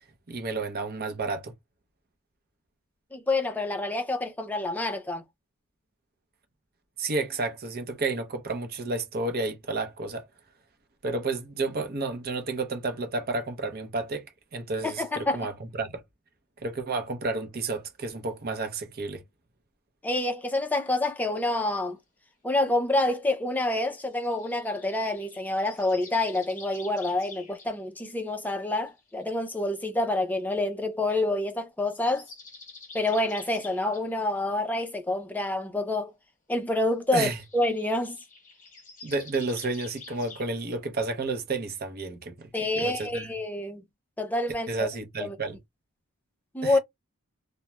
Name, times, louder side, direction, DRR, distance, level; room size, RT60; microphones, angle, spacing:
voice 1, 0.3-1.5 7.0-10.3 11.0-14.2 14.5-15.9 16.6-19.2 37.1-37.4 39.0-42.5 42.8-43.3 44.7-45.6 46.6-46.8, right 3 dB, 45° right, 0.6 m, -31 dB
voice 2, 3.1-5.2 14.8-15.4 20.0-22.0 22.4-32.3 32.9-36.1 36.5-38.2 42.5-43.8 44.2-44.7 45.2-45.4 46.5-46.8, left 2 dB, 10° left, 0.4 m, -27 dB
sound 1, 24.2-27.7 28.3-29.4 30.4-30.5 31.8-34.1 37.3-40.4, left 4 dB, 35° left, 0.8 m, -48 dB
2.3 x 2.1 x 2.9 m
head